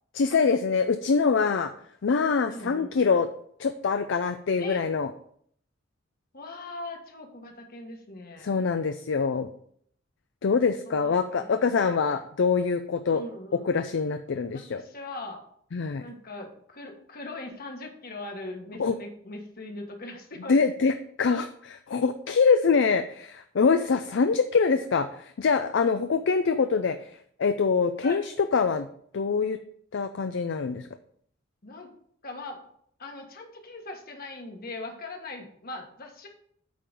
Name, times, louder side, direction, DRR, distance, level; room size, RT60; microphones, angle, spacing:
voice 1, 0.1-1.7 2.0-3.3 3.6-5.1 8.4-9.5 10.4-13.2 13.5-14.8 15.7-16.0 18.8-19.0 20.5-27.0 27.4-28.9 29.1-29.6 29.9-30.9, left 5 dB, 65° left, 9 dB, 0.5 m, -24 dB
voice 2, 2.5-2.9 4.6-4.8 6.3-8.5 10.8-11.5 13.1-13.7 14.5-15.4 16.0-20.5 22.4-22.5 28.0-28.2 31.6-31.9 32.2-32.6 33.0-36.3, left 2 dB, 50° left, 3 dB, 1.5 m, -40 dB
8.6 x 3.8 x 6.8 m, 0.64 s
head